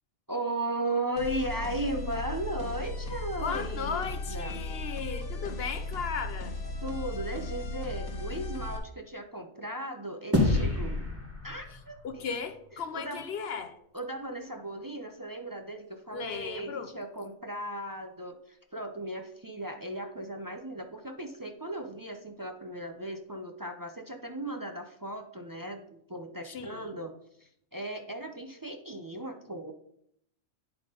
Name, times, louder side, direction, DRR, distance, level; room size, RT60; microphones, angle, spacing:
voice 1, 0.3-4.6 6.8-11.0 11.4-12.4 12.9-13.2 13.9-27.1 27.4-29.7, right 1 dB, 30° right, 5 dB, 0.4 m, -36 dB
sound 1, 1.2-8.8, left 2 dB, 85° left, 1.8 m, -36 dB
voice 2, 3.4-6.5 12.0-13.7 16.1-16.9 26.5-27.0, left 6 dB, 55° left, 10 dB, 0.8 m, -36 dB
sound 2, 10.3-12.9, left 2 dB, 10° right, 1.5 m, -29 dB
10.5 x 3.5 x 5.2 m, 0.69 s
omnidirectional pair, 1.4 m